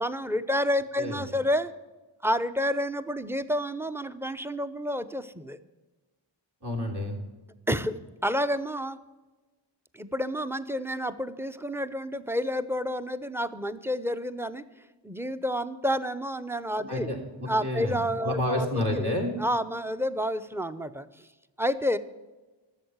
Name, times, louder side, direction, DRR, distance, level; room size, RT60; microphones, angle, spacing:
voice 1, 0.0-1.7 2.2-5.6 7.7-9.0 9.9-14.6 15.0-17.1 17.5-19.1 19.4-21.3 21.6-22.0, equal, 5° right, 12 dB, 0.7 m, -29 dB
voice 2, 6.6-7.2 16.9-18.0 18.2-19.3, left 1 dB, 55° right, 2 dB, 3.4 m, -29 dB
12.5 x 7.3 x 8.2 m, 1.2 s
wide cardioid pair, 55°, 47 cm